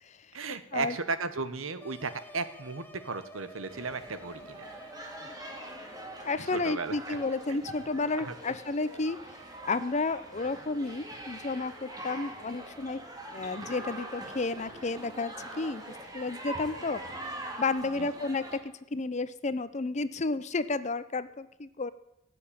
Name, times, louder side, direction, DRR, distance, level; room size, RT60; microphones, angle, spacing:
voice 1, 0.3-4.7 6.5-7.2 7.5-7.6 8.2-8.3 18.0-18.1, right 4 dB, 85° right, 12 dB, 1.1 m, -35 dB
sound 1, 1.8-6.3, left 1 dB, 10° left, 1.0 m, -49 dB
sound 2, 3.7-18.6, right 1 dB, 20° right, 2.1 m, -43 dB
voice 2, 6.2-9.2 9.6-13.0 13.3-15.8 16.1-17.0 17.6-21.9, left 3 dB, 35° left, 14 dB, 0.6 m, -32 dB
17.5 x 7.8 x 8.7 m, 0.87 s
head